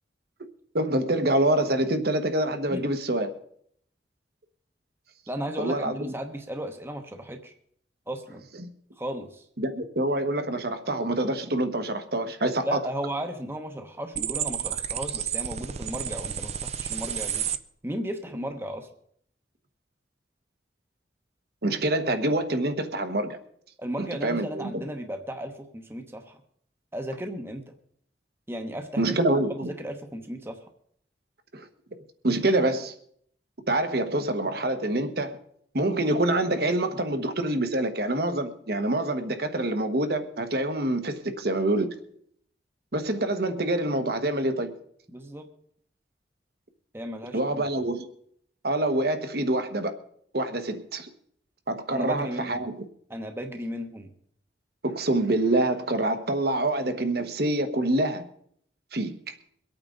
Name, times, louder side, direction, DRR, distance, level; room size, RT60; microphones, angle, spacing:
voice 1, 0.7-3.3 5.6-6.1 9.6-12.8 21.6-23.4 24.0-24.7 29.0-29.7 31.5-31.7 32.2-32.9 33.7-35.4 35.7-41.9 42.9-44.7 47.3-48.1 48.6-49.9 50.3-51.1 51.7-52.7 54.8-58.2 58.9-59.3, right 1 dB, 60° right, 1.3 m, -26 dB
voice 2, 5.3-7.5 8.1-8.5 9.0-9.4 12.6-17.5 17.8-18.9 23.8-26.4 26.9-27.7 28.5-29.2 29.5-30.6 45.1-45.5 46.9-47.7 51.9-52.6 53.1-54.1, equal, 15° right, 1.0 m, -35 dB
sound 1, 14.1-17.6, right 9 dB, 35° right, 0.5 m, -31 dB
23.5 x 8.8 x 3.9 m
head